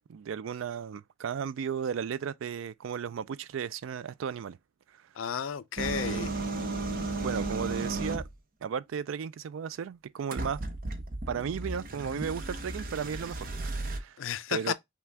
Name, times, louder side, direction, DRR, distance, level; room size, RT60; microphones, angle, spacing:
voice 1, 0.1-4.6 6.1-6.4 7.2-8.2 8.6-10.6 11.3-14.2 14.5-14.7, right 7 dB, 85° right, 0.3 m, -35 dB
voice 2, 5.2-6.3 14.2-14.7, left 7 dB, 80° left, 0.5 m, -32 dB
sound 1, 5.8-8.3 10.3-14.0, right 2 dB, 45° right, 0.7 m, -34 dB
5.8 x 2.3 x 3.4 m
head